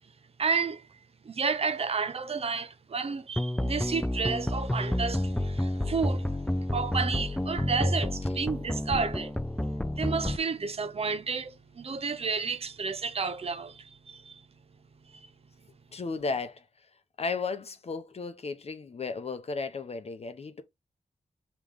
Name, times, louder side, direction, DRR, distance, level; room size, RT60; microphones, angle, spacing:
voice 1, 0.4-0.9 1.2-6.3 6.7-9.3 10.0-14.4, right 5 dB, 50° right, 0.6 m, -31 dB
sound 1, 3.4-10.4, left 1 dB, 5° left, 0.4 m, -30 dB
voice 2, 15.9-16.6 17.2-20.6, left 4 dB, 50° left, 0.7 m, -34 dB
5.0 x 3.1 x 3.4 m
wide cardioid pair, 125°, 13 cm